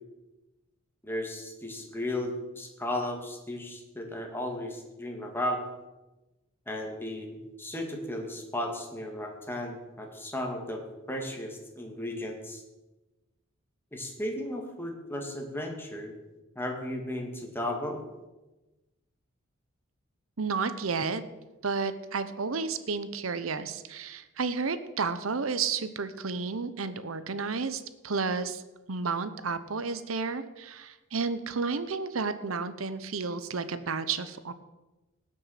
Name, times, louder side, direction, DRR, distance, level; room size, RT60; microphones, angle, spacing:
voice 1, 1.0-5.6 6.7-10.8 11.1-12.6 13.9-16.1 16.6-18.0, left 1 dB, 10° left, 1 dB, 2.1 m, -35 dB
voice 2, 20.4-21.2 21.6-28.6 28.9-34.5, right 4 dB, 90° right, 12 dB, 0.9 m, -32 dB
18.5 x 6.5 x 5.8 m, 1.1 s
head